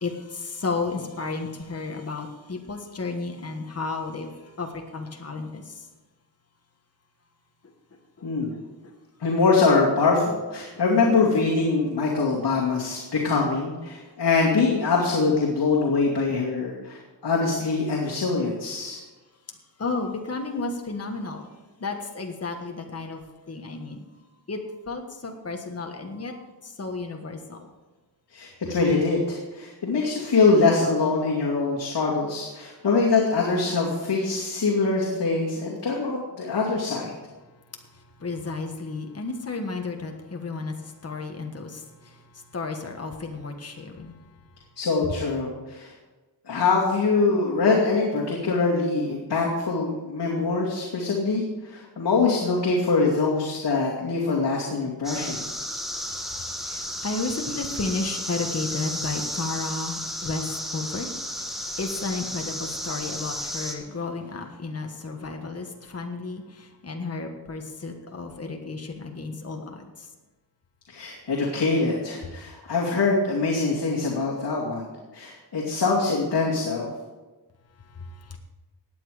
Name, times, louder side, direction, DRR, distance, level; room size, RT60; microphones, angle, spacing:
voice 1, 0.0-4.3 4.6-5.7 8.5-8.9 19.8-21.5 21.8-23.2 23.5-24.0 24.5-24.6 24.9-27.6 38.2-40.8 41.0-42.2 42.5-44.1 56.1-70.1 78.0-78.4, left 3 dB, 35° left, 3 dB, 1.5 m, -33 dB
voice 2, 9.2-19.0 28.3-37.1 44.8-45.9 46.5-55.4 70.9-74.8 75.1-76.9, left 4 dB, 65° left, -4 dB, 2.5 m, -23 dB
sound 1, 55.0-63.7, equal, ahead, 1.6 m, -33 dB
16.5 x 9.3 x 5.0 m, 1.2 s
wide cardioid pair, 150°, 42 cm